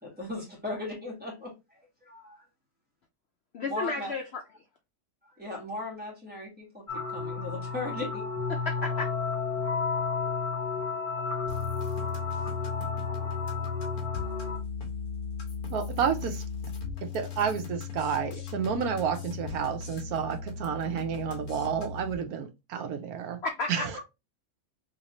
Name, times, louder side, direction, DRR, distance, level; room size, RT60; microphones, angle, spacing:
voice 1, 0.0-2.4 3.7-4.1 5.2-8.2, left 2 dB, 5° right, 1.2 m, -38 dB
voice 2, 3.5-4.2 8.6-9.1 23.4-24.0, left 3 dB, 85° left, 0.5 m, -32 dB
sound 1, 6.9-14.6, left 5 dB, 25° left, 1.0 m, -32 dB
sound 2, 11.5-22.1, left 5 dB, 70° left, 1.5 m, -36 dB
voice 3, 15.7-16.4 17.0-23.4 23.7-23.9, right 7 dB, 75° right, 1.1 m, -30 dB
3.4 x 2.7 x 2.9 m
omnidirectional pair, 1.7 m